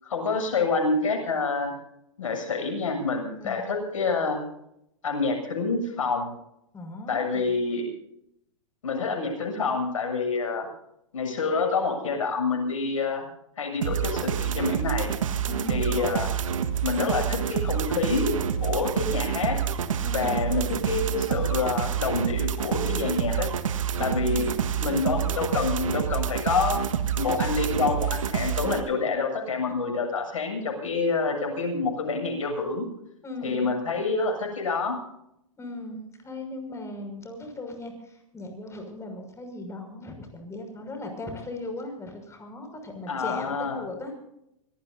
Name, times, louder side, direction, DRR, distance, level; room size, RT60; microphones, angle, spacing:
voice 1, 0.0-1.7 2.2-4.4 5.0-6.3 7.1-7.9 8.8-10.7 11.1-13.2 13.6-15.1 15.7-16.3 16.8-18.3 18.6-19.6 20.1-23.5 24.0-24.5 24.8-26.8 27.2-32.9 33.4-35.0 43.1-43.8, left 4 dB, 75° left, 2 dB, 7.7 m, -27 dB
voice 2, 6.7-7.5 15.4-15.9 20.0-20.4 23.9-24.5 33.2-33.7 35.6-44.3, left 2 dB, 15° left, 4 dB, 6.2 m, -38 dB
sound 1, 13.8-28.8, right 8 dB, 75° right, 1.6 m, -28 dB
25.0 x 18.5 x 2.8 m, 0.80 s
hypercardioid pair, 110°, 17 cm